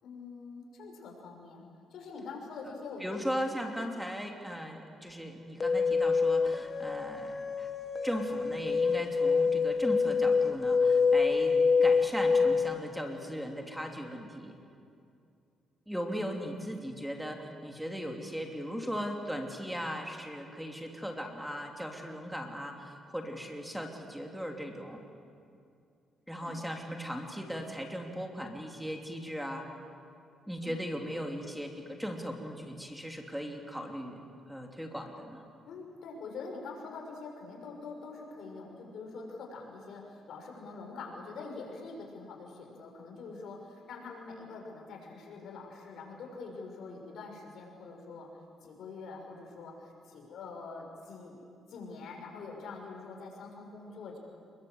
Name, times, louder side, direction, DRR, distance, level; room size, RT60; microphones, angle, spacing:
voice 1, 0.0-3.8 26.4-26.5 30.6-30.8 35.6-48.3 48.6-54.2, left 4 dB, 70° left, 1 dB, 6.3 m, -45 dB
voice 2, 3.0-7.7 8.0-14.6 15.9-25.0 26.3-29.7 30.5-34.2 34.5-35.4, equal, ahead, 2 dB, 3.0 m, -38 dB
sound 1, 5.6-12.8, left 5 dB, 35° left, 1.6 m, -26 dB
28.0 x 22.5 x 8.0 m, 2.5 s
cardioid pair, 90°, 0 cm